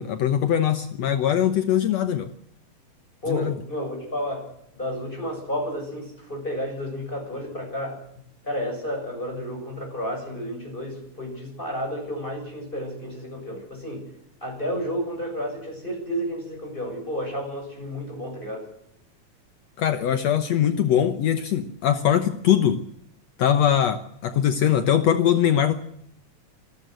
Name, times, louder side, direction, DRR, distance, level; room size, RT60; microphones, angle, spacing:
voice 1, 0.0-2.3 3.3-3.5 19.8-22.8 23.4-25.7, left 9 dB, 65° left, 9 dB, 2.0 m, -21 dB
voice 2, 3.2-4.5 4.7-8.0 8.4-14.1 14.4-18.7, equal, 15° left, 1 dB, 7.5 m, -31 dB
26.5 x 13.0 x 8.0 m, 0.72 s
omnidirectional pair, 3.6 m